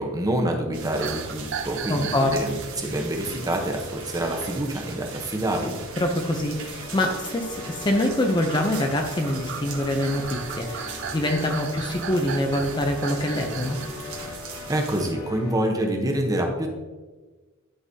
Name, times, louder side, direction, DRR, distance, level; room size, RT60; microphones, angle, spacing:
voice 1, 0.0-5.8 14.7-16.7, right 1 dB, 15° right, 2 dB, 0.8 m, -26 dB
sound 1, 0.7-15.1, right 4 dB, 75° right, 1.3 m, -39 dB
sound 2, 0.9-13.9 14.3-14.6, right 9 dB, 60° right, 0.4 m, -39 dB
voice 2, 1.9-2.4 6.0-13.8, left 1 dB, 20° left, 3 dB, 0.5 m, -25 dB
sound 3, 6.8-15.5, left 4 dB, 45° left, 0.8 m, -40 dB
11.0 x 3.9 x 2.7 m, 1.3 s
head